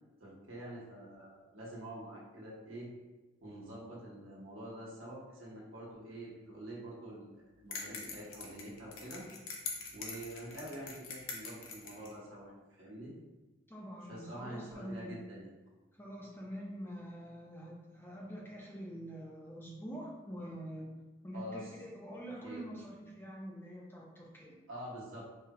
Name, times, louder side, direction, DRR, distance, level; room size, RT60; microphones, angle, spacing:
voice 1, 0.2-2.9 3.4-7.3 7.6-9.2 9.9-13.1 14.1-15.5 21.3-21.7 22.4-22.7 24.7-25.3, right 1 dB, 90° right, -5 dB, 1.2 m, -46 dB
sound 1, 7.7-12.1, left 4 dB, 85° left, 0.7 m, -43 dB
voice 2, 13.7-15.2 16.0-20.9 21.2-24.6, equal, 10° left, -4 dB, 0.7 m, -45 dB
4.7 x 2.4 x 2.9 m, 1.2 s
head